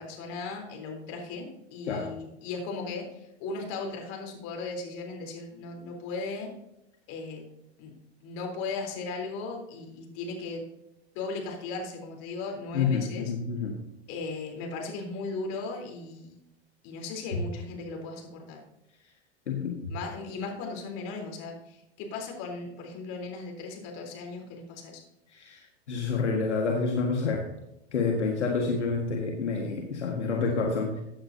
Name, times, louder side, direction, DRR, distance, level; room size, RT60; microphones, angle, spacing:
voice 1, 0.0-6.5 7.1-7.4 7.8-7.9 8.2-10.6 11.1-13.3 14.1-16.4 16.8-18.6 19.9-25.0, left 3 dB, 55° left, 2 dB, 3.8 m, -37 dB
voice 2, 12.7-13.8 19.5-19.9 25.3-27.4 27.9-31.0, left 4 dB, 85° left, 1 dB, 1.8 m, -28 dB
15.0 x 9.0 x 2.8 m, 0.86 s
hypercardioid pair, 95°, 34 cm